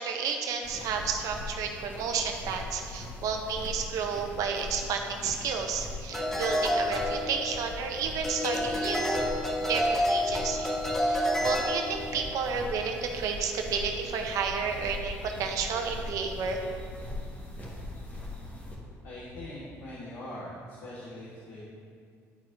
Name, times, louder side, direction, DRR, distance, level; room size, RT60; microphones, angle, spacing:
voice 1, 0.0-9.2 9.7-10.7 11.0-16.6, right 5 dB, 70° right, 3 dB, 0.7 m, -31 dB
sound 1, 0.6-18.8, left 1 dB, 30° left, 1.4 m, -41 dB
sound 2, 6.1-7.8 8.2-12.2, left 1 dB, 5° left, 1.0 m, -29 dB
voice 2, 19.0-21.6, left 1 dB, 85° left, -8 dB, 1.5 m, -42 dB
11.0 x 4.2 x 2.6 m, 2.2 s
cardioid pair, 90°, 6 cm